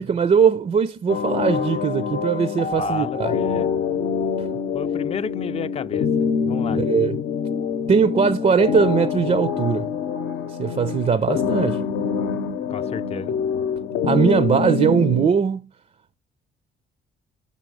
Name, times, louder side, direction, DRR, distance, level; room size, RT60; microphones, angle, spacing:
voice 1, 0.0-3.3 6.7-7.2 7.9-9.9 10.6-11.8 14.0-15.7, right 6 dB, 35° right, 0.4 m, -20 dB
sound 1, 1.1-15.3, left 6 dB, 70° left, 0.7 m, -25 dB
voice 2, 2.8-3.7 4.7-6.8 12.7-13.4, left 7 dB, 30° left, 0.4 m, -32 dB
5.3 x 5.2 x 6.2 m
cardioid pair, 90°, 20 cm